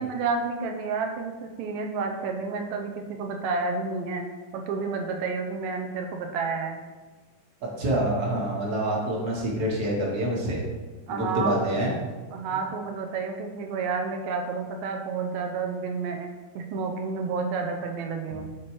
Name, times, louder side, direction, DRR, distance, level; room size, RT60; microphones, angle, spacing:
voice 1, 0.0-4.2 4.5-6.8 11.1-11.7 12.3-16.3 16.6-18.5, right 4 dB, 80° right, 3 dB, 2.3 m, -30 dB
voice 2, 7.6-10.6 11.1-11.9, right 1 dB, 50° right, -3 dB, 1.1 m, -26 dB
12.0 x 4.5 x 3.1 m, 1.3 s
omnidirectional pair, 3.9 m